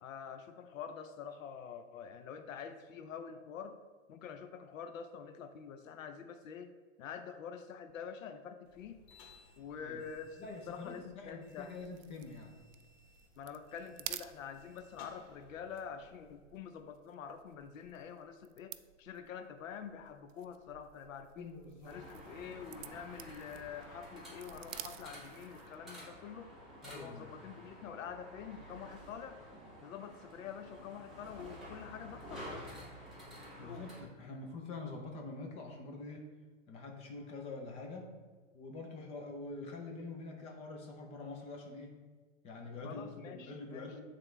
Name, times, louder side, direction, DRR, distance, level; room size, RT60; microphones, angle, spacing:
voice 1, 0.0-3.8 4.1-9.0 9.6-11.8 13.4-18.7 19.0-21.6 21.8-26.5 26.9-29.4 29.8-32.9 33.6-33.9 42.8-44.0, left 7 dB, 80° left, 9 dB, 0.7 m, -47 dB
sound 1, 8.6-16.3, left 3 dB, 50° left, 1.0 m, -61 dB
voice 2, 10.4-12.6 21.4-22.0 26.8-27.3 28.7-28.8 33.6-36.3 36.7-38.1 38.5-41.9 42.4-44.0, left 3 dB, 15° left, 2 dB, 0.6 m, -45 dB
sound 2, 11.5-25.8, right 12 dB, 75° right, 0.5 m, -52 dB
sound 3, 21.9-34.0, equal, ahead, 1.8 m, -51 dB
9.1 x 3.8 x 3.3 m, 1.5 s
hypercardioid pair, 155°, 39 cm